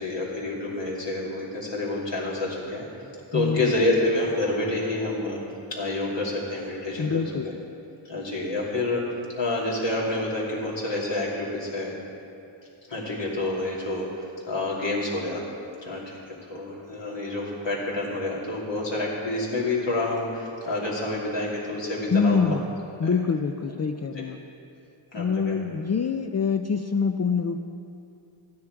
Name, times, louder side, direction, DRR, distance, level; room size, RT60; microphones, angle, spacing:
voice 1, 0.0-2.9 3.3-5.4 5.7-7.5 8.1-9.0 9.4-11.9 12.9-15.5 15.8-22.6 23.0-23.2 24.1-24.2 25.1-25.6, left 2 dB, 60° left, -5 dB, 2.7 m, -28 dB
voice 2, 3.3-3.7 7.0-7.5 22.1-22.7 23.0-24.4 25.1-27.6, left 5 dB, 35° left, 6 dB, 0.4 m, -25 dB
13.0 x 9.6 x 4.6 m, 2.6 s
wide cardioid pair, 85°, 49 cm